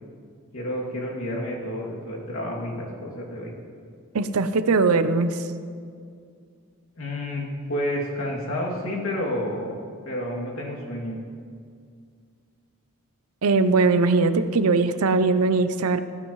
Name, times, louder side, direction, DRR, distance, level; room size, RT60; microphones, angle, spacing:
voice 1, 0.5-3.5 7.0-9.7 10.0-11.2, left 1 dB, 70° left, -3 dB, 2.6 m, -30 dB
voice 2, 4.1-5.5 13.4-16.0, right 3 dB, 80° right, 11 dB, 0.6 m, -20 dB
15.5 x 15.0 x 3.1 m, 2.2 s
head